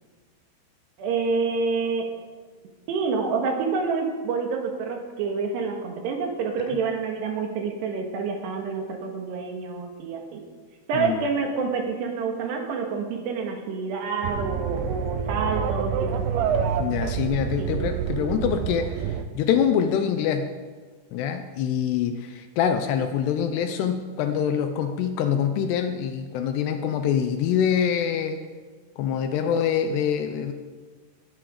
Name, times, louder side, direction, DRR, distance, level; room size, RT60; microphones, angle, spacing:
voice 1, 1.0-2.1 2.9-10.4 10.9-16.6 17.6-17.7, right 4 dB, 70° right, 2 dB, 3.5 m, -28 dB
sound 1, 14.2-19.2, right 7 dB, 85° right, 3.0 m, -27 dB
voice 2, 16.8-18.9 19.4-20.5 21.1-22.2 22.6-28.4 29.0-30.5, left 8 dB, 80° left, 7 dB, 2.6 m, -24 dB
19.5 x 8.9 x 5.0 m, 1.4 s
omnidirectional pair, 5.2 m